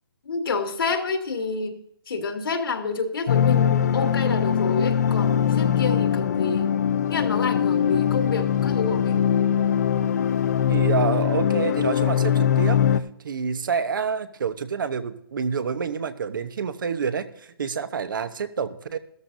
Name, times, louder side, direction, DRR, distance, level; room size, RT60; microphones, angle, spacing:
voice 1, 0.2-1.8 2.1-6.7 7.1-9.2, left 4 dB, 65° left, 5 dB, 2.2 m, -28 dB
sound 1, 3.3-13.0, left 9 dB, 40° left, 0.5 m, -22 dB
voice 2, 10.7-12.8 13.2-19.0, right 6 dB, 55° right, 12 dB, 1.0 m, -28 dB
14.5 x 13.5 x 2.7 m, 0.72 s
hypercardioid pair, 165°, 13 cm